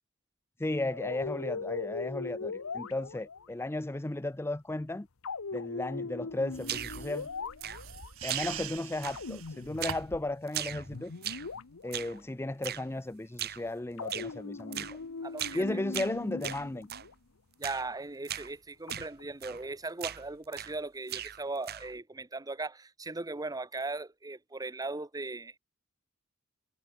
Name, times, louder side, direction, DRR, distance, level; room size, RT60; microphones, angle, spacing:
voice 1, 0.6-5.1 5.5-7.3 8.2-11.1 11.8-15.0 15.5-16.9, left 2 dB, 10° left, 0.5 m, -35 dB
sound 1, 0.9-3.5 5.2-8.1 9.1-10.4 10.7-12.2 14.0-17.1 18.9-19.6, left 4 dB, 80° left, 0.9 m, -40 dB
sound 2, 6.5-10.3, right 8 dB, 80° right, 2.9 m, -43 dB
sound 3, 6.6-7.1 7.6-8.0 8.3-8.8 9.0-9.4 9.8-10.1 10.5-11.5 11.9-12.2 12.6-12.9 13.4-13.7 14.1-14.3 14.7-15.0 15.4-15.6 15.9-17.1 17.6-17.9 18.2-18.5 18.9-19.1 19.4-19.7 20.0-20.8 21.1-22.0, right 11 dB, 50° right, 1.0 m, -39 dB
voice 2, 15.2-15.8 17.6-25.5, right 3 dB, 15° right, 1.0 m, -38 dB
head